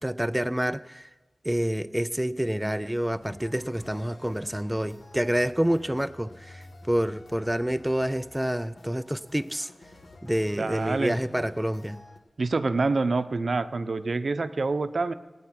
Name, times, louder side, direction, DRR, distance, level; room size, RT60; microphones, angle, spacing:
voice 1, 0.0-1.1 1.4-9.7 10.2-12.0, equal, 10° right, 0.4 m, -28 dB
sound 1, 3.2-12.2, left 2 dB, 65° left, 1.6 m, -50 dB
voice 2, 10.6-11.2 12.4-15.1, right 3 dB, 65° right, 0.7 m, -26 dB
19.0 x 9.2 x 5.9 m
wide cardioid pair, 65°, 0 cm